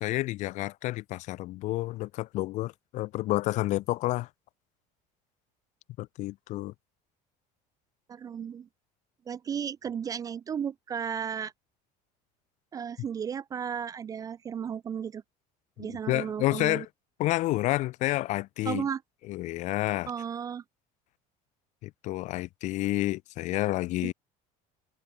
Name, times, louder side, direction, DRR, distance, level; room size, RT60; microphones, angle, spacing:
voice 1, 0.0-4.3 6.0-6.7 15.8-16.9 17.2-18.8 19.3-20.1 21.8-24.1, left 17 dB, 45° left, 0.4 m, -29 dB
voice 2, 8.1-8.7 9.3-11.5 12.7-15.2 15.8-16.9 18.7-19.0 20.1-20.6 24.0-24.1, right 7 dB, 20° right, 0.3 m, -34 dB
cardioid pair, 165°, 17 cm